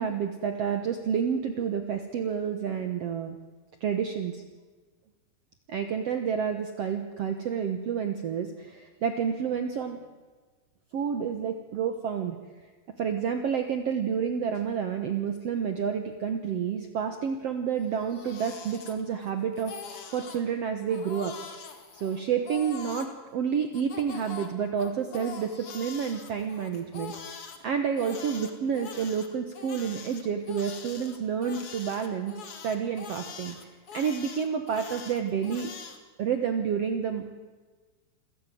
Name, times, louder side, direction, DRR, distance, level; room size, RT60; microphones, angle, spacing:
voice 1, 0.0-3.4 3.8-4.4 5.7-10.0 10.9-12.4 13.0-19.7 20.1-21.3 21.9-27.4 27.6-32.3 32.6-33.6 33.9-35.7 36.2-37.2, right 7 dB, 80° right, 7 dB, 1.4 m, -29 dB
Crying sobbing, 17.8-19.3 19.6-20.4 20.9-23.1 23.7-27.6 28.0-36.0, left 5 dB, 45° left, 2.2 m, -43 dB
27.5 x 15.5 x 9.3 m, 1.4 s
omnidirectional pair, 4.8 m